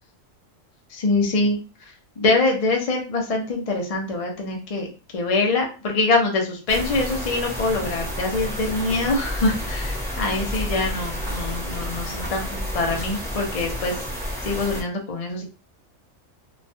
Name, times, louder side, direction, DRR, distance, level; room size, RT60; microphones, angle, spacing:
voice 1, 0.9-1.6 2.2-4.9 5.1-14.0 14.4-15.4, left 3 dB, 40° left, 0 dB, 0.5 m, -24 dB
sound 1, 6.7-14.8, equal, ahead, 0.7 m, -30 dB
3.0 x 2.2 x 2.6 m, 0.35 s
omnidirectional pair, 1.4 m